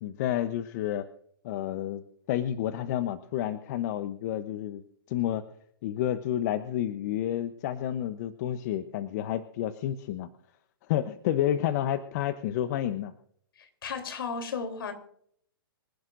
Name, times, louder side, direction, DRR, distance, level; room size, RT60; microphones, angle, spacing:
voice 1, 0.0-1.1 1.4-2.0 2.3-4.8 5.1-5.4 5.8-10.3 10.9-13.1, left 11 dB, 45° left, 0.9 m, -30 dB
voice 2, 13.6-14.9, left 5 dB, 70° left, 3.4 m, -34 dB
26.0 x 11.0 x 2.6 m
hypercardioid pair, 130°, 12 cm